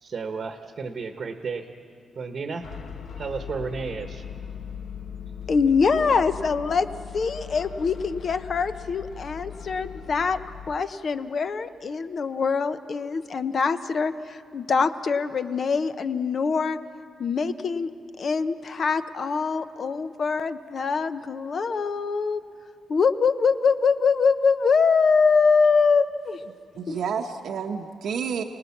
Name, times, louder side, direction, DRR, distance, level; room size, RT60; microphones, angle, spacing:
voice 1, 0.0-1.7 2.1-2.7 3.2-4.3, right 5 dB, 40° right, 6 dB, 1.1 m, -33 dB
sound 1, 2.6-10.8, left 7 dB, 55° left, 1.1 m, -39 dB
voice 2, 5.5-6.9 7.1-10.4 10.7-16.8 17.2-17.9 18.2-22.4 22.9-26.4 26.9-27.0, left 5 dB, 40° left, 11 dB, 0.7 m, -23 dB
voice 3, 26.5-28.4, right 6 dB, 70° right, 2 dB, 1.0 m, -30 dB
29.0 x 19.0 x 7.2 m, 2.3 s
wide cardioid pair, 160°, 0 cm